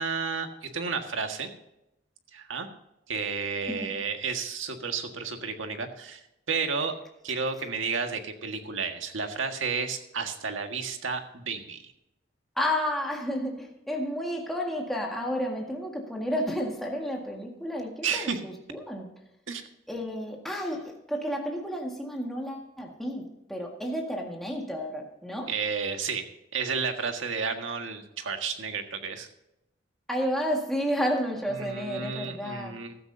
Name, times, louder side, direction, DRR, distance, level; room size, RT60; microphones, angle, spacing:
voice 1, 0.0-1.5 2.3-2.7 3.1-6.2 6.5-6.9 7.2-11.9 18.0-18.4 19.5-19.6 25.5-26.2 26.5-29.3 31.6-33.0, right 5 dB, 90° right, 5 dB, 1.7 m, -31 dB
voice 2, 12.6-19.1 19.9-23.2 23.5-25.5 30.1-32.8, equal, ahead, 0 dB, 1.8 m, -31 dB
15.5 x 13.0 x 2.7 m, 0.87 s
head